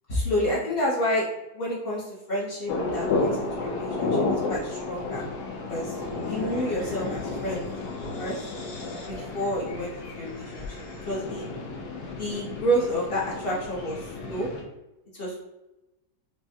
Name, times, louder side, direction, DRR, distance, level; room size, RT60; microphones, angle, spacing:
voice 1, 0.1-1.3 1.5-5.2 5.7-6.0 6.2-7.7 8.2-8.4 9.1-10.8 11.1-11.5 12.1-14.5 15.1-15.5, equal, 50° left, -5 dB, 0.7 m, -29 dB
sound 1, 2.7-14.6, left 3 dB, 65° left, 1.2 m, -32 dB
sound 2, 5.9-11.4, left 2 dB, 90° left, 1.4 m, -44 dB
4.9 x 2.2 x 2.7 m, 0.94 s
omnidirectional pair, 2.0 m